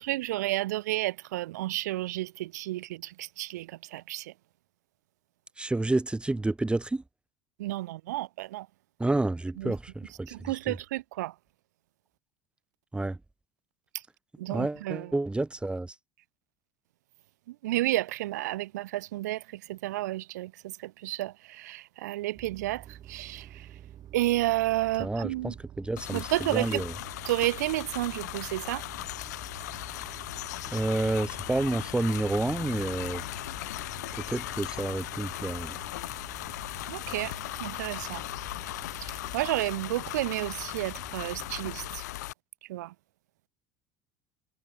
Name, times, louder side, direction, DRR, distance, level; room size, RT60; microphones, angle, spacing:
voice 1, 0.0-4.3 7.6-8.7 9.6-9.8 10.3-11.4 13.9-14.0 14.4-15.1 17.5-23.7 24.1-25.5 26.1-26.8 27.3-28.9 36.9-38.3 39.0-42.0 42.6-42.9, right 17 dB, 85° right, 3.6 m, -31 dB
voice 2, 5.6-7.0 9.0-10.8 12.9-13.2 14.5-15.9 25.0-26.9 30.7-33.2 34.1-35.8, right 2 dB, 10° right, 2.7 m, -30 dB
sound 1, 22.3-42.0, right 11 dB, 50° right, 7.6 m, -49 dB
sound 2, 26.0-42.3, left 16 dB, 85° left, 5.8 m, -38 dB
hypercardioid pair, 85°, 9 cm